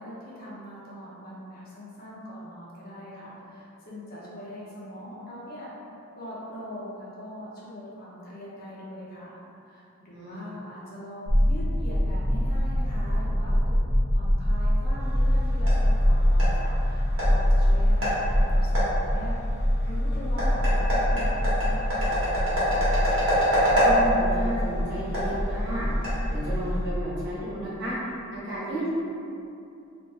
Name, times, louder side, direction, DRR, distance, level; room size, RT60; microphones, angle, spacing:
voice 1, 0.0-5.7 6.2-13.7 14.1-22.9, equal, 45° left, -8 dB, 0.8 m, -41 dB
voice 2, 10.1-10.4 23.7-25.9 26.3-27.9 28.3-28.9, right 1 dB, 55° right, -10 dB, 1.2 m, -33 dB
sound 1, 11.3-27.0, equal, 5° left, 0.9 m, -24 dB
sound 2, 15.0-26.8, equal, 90° right, 1.3 m, -28 dB
3.1 x 2.6 x 3.2 m, 2.7 s
head